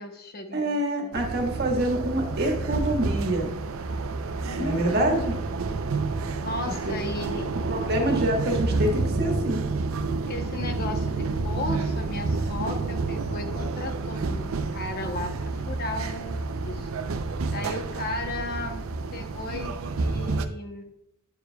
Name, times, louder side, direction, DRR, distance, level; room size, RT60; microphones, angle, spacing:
voice 1, 0.0-1.2 4.4-5.3 6.4-7.5 10.2-16.4 16.6-16.9 17.5-18.8 19.1-20.9, left 2 dB, 45° left, 5 dB, 0.8 m, -35 dB
voice 2, 0.5-3.5 4.6-5.3 6.9-7.0 7.7-9.6, right 1 dB, 50° right, 1 dB, 1.5 m, -26 dB
sound 1, 1.1-20.4, right 3 dB, 75° right, 0.5 m, -29 dB
9.2 x 7.0 x 2.3 m, 0.83 s
head